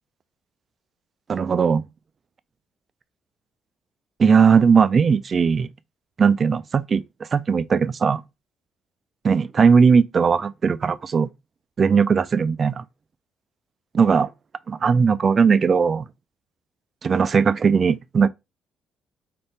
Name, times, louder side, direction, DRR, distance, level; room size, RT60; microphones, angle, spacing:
voice 1, 1.3-1.8 4.2-5.7 6.2-7.0 7.3-8.2 9.2-11.3 11.8-12.8 13.9-14.3 14.7-16.1 17.0-18.3, right 6 dB, 40° right, 0.3 m, -18 dB
3.4 x 2.2 x 4.2 m
cardioid pair, 90°, 0 cm